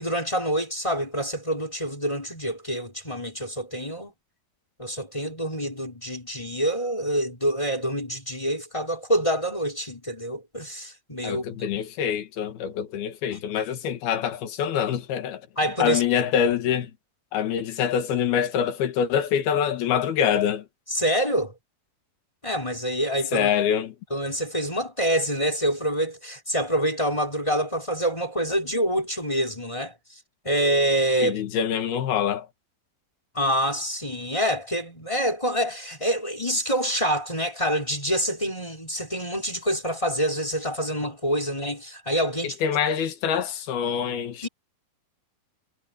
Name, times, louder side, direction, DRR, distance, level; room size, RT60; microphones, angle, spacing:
voice 1, 0.0-4.1 4.8-11.4 15.6-16.0 20.9-21.5 22.4-23.5 24.1-30.0 30.4-31.4 33.3-42.6 44.4-44.5, equal, 10° left, 5.4 m, -26 dB
voice 2, 11.2-15.4 15.8-16.9 17.3-20.7 23.3-24.0 31.2-32.5 42.6-44.5, left 8 dB, 80° left, 3.7 m, -25 dB
omnidirectional pair, 4.3 m